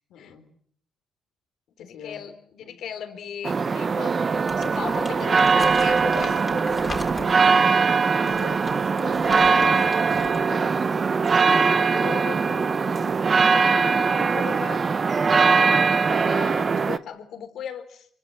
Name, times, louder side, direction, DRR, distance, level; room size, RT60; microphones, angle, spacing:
voice 1, 0.1-0.5 1.8-2.2 2.6-2.8 6.8-7.3 7.7-7.8 8.2-10.7 11.1-13.2, left 8 dB, 85° left, 5 dB, 4.9 m, -42 dB
voice 2, 1.8-4.2 4.5-6.8 13.5-18.1, left 8 dB, 70° left, 10 dB, 3.6 m, -37 dB
sound 1, 3.4-17.0, right 5 dB, 40° right, 1.1 m, -21 dB
Crumpling crinkling, 4.3-7.5 8.1-10.4 10.7-10.9, left 2 dB, 20° left, 4.0 m, -39 dB
25.0 x 23.5 x 7.6 m, 0.63 s
cardioid pair, 90°, 0 cm